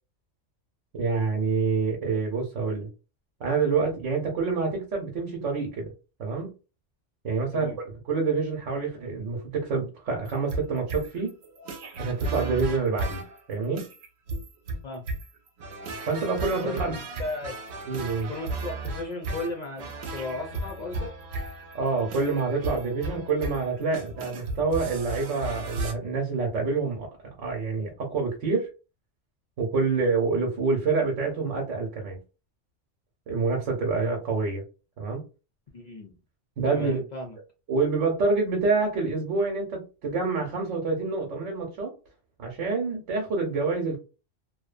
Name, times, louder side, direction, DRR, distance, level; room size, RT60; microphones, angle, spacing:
voice 1, 0.9-2.9 3.4-5.9 6.2-6.5 7.2-11.3 12.0-13.2 13.5-13.9 16.1-16.9 17.9-18.3 21.7-27.1 27.4-28.7 29.6-32.2 33.3-34.6 35.0-35.2 36.6-37.0 37.7-41.9 42.4-44.0, right 4 dB, 85° right, 1 dB, 1.1 m, -27 dB
sound 1, 10.3-25.9, right 2 dB, 70° right, 0.8 m, -35 dB
voice 2, 16.6-17.6 18.3-21.1 35.7-36.1 36.6-37.4, left 2 dB, 55° left, 1 dB, 0.5 m, -35 dB
2.7 x 2.1 x 2.4 m, 0.32 s
omnidirectional pair, 1.3 m